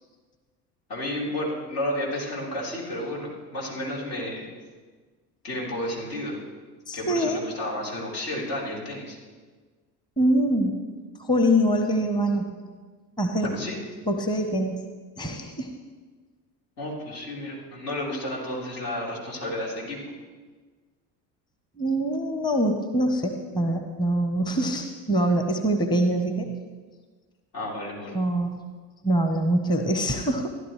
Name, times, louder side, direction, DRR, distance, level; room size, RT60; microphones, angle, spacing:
voice 1, 0.9-4.4 5.4-6.4 6.9-9.2 13.5-13.8 16.8-20.0 27.5-28.2, left 1 dB, 70° left, -5 dB, 4.0 m, -32 dB
voice 2, 6.9-7.4 10.2-10.8 11.2-12.5 13.2-13.5 14.1-14.9 15.2-15.7 21.8-26.5 28.1-28.5 29.0-30.5, right 1 dB, 10° left, 5 dB, 1.0 m, -24 dB
14.5 x 11.0 x 3.2 m, 1.4 s
figure-of-eight pair, 65°, 50 cm